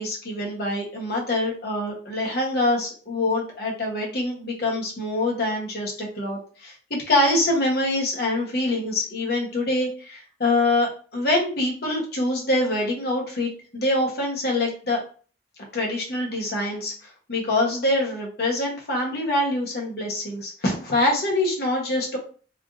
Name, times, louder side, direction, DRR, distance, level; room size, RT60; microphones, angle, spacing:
voice 1, 0.0-15.0 15.7-22.2, left 1 dB, 60° left, -1 dB, 1.0 m, -25 dB
3.3 x 2.5 x 2.5 m, 0.41 s
head